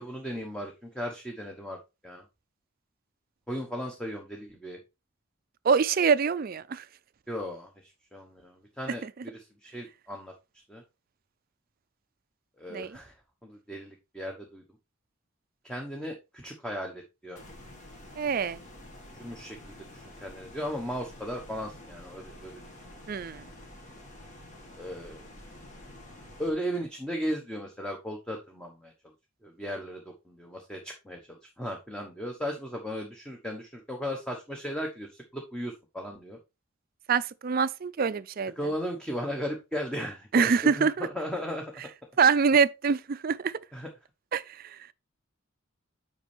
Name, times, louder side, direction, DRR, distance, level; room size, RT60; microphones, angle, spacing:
voice 1, 0.0-1.8 2.0-2.2 3.5-4.8 7.3-10.3 10.7-10.8 12.6-13.1 13.4-14.6 15.6-17.4 19.2-22.7 24.8-25.2 26.4-28.9 29.4-36.4 38.6-41.7 43.7-43.9, equal, 5° left, 1.0 m, -36 dB
voice 2, 5.6-6.9 9.0-9.1 12.7-13.0 18.2-18.6 23.1-23.5 37.1-38.5 40.3-41.1 42.2-43.6 44.3-44.8, right 5 dB, 45° right, 0.4 m, -25 dB
sound 1, 17.4-26.5, left 1 dB, 35° left, 1.7 m, -49 dB
8.1 x 5.3 x 3.3 m
head